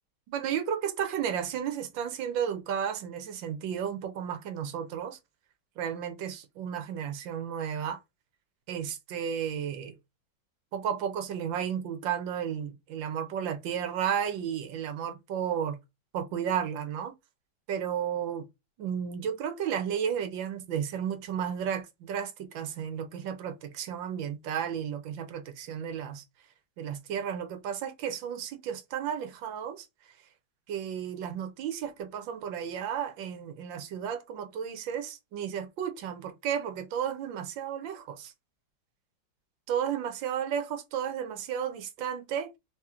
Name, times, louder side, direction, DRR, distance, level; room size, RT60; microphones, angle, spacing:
voice 1, 0.3-5.2 5.8-8.0 8.7-10.0 10.7-15.8 16.1-17.1 17.7-18.5 18.8-26.2 26.8-29.9 30.7-38.3 39.7-42.5, right 8 dB, 85° right, 1.5 m, -33 dB
3.7 x 2.9 x 3.6 m
omnidirectional pair, 2.1 m